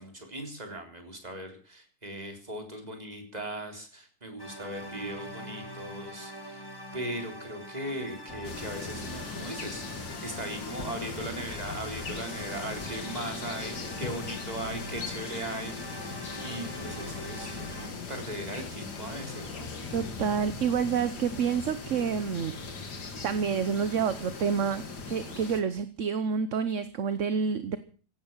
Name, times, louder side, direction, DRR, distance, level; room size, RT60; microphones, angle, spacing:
voice 1, 0.0-6.7 6.9-9.8 10.2-16.2 16.4-19.7, right 1 dB, 25° right, 4 dB, 3.9 m, -38 dB
sound 1, 4.4-17.9, equal, 15° left, 1.7 m, -44 dB
sound 2, 7.9-22.1, left 2 dB, 50° left, 4.5 m, -47 dB
sound 3, 8.4-25.6, left 4 dB, 80° left, 2.7 m, -39 dB
voice 2, 19.9-22.5 23.2-27.8, right 6 dB, 55° right, 12 dB, 1.2 m, -28 dB
16.0 x 11.0 x 7.4 m, 0.41 s
omnidirectional pair, 1.8 m